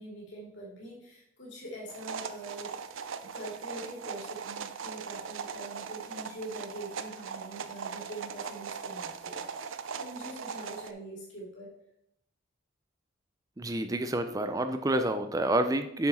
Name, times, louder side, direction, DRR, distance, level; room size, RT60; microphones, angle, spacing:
voice 1, 0.0-2.7 3.1-11.7, right 1 dB, 60° left, -4 dB, 2.6 m, -44 dB
sound 1, 1.9-10.9, right 6 dB, 70° right, 0.5 m, -40 dB
voice 2, 13.6-16.1, right 1 dB, 15° right, 8 dB, 0.4 m, -28 dB
7.8 x 6.1 x 4.2 m, 0.78 s
head